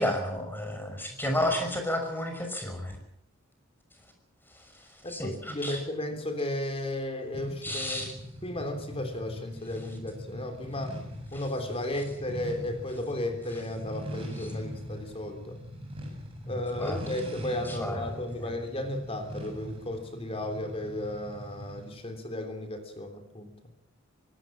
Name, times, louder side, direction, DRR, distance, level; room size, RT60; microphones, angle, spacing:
voice 1, 0.0-3.0 5.1-5.8 7.6-8.1 11.3-11.4 16.4-17.0 17.7-18.0 18.4-18.5, left 1 dB, 10° left, 4 dB, 6.0 m, -31 dB
voice 2, 5.0-8.1 8.4-11.0 11.3-15.6 16.5-23.5, left 1 dB, 30° left, 6 dB, 3.2 m, -34 dB
sound 1, 7.3-22.0, equal, 25° right, 8.0 m, -42 dB
24.5 x 18.0 x 7.5 m, 0.74 s
head